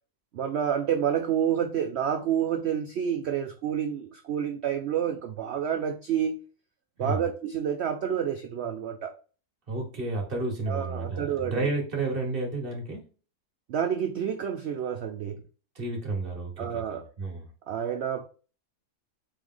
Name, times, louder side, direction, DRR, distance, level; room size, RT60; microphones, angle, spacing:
voice 1, 0.3-6.4 7.0-9.1 10.7-11.6 13.7-15.4 16.6-17.1 17.7-18.3, right 8 dB, 70° right, 0.6 m, -29 dB
voice 2, 9.7-13.0 15.7-17.5, right 2 dB, 35° right, 1.6 m, -31 dB
4.3 x 3.3 x 3.7 m
omnidirectional pair, 1.7 m